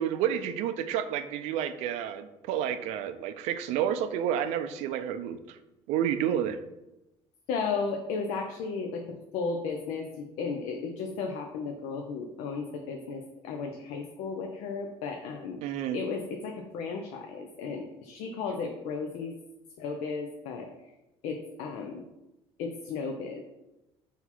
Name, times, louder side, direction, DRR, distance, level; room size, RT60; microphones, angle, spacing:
voice 1, 0.0-5.6 5.9-6.6 15.6-16.0, right 9 dB, 80° right, 11 dB, 0.4 m, -30 dB
voice 2, 7.5-15.6 15.9-19.3 19.8-20.9 21.2-22.0 22.6-23.4, left 4 dB, 80° left, 3 dB, 0.5 m, -34 dB
4.0 x 2.8 x 4.3 m, 0.97 s
cardioid pair, 120°, 11 cm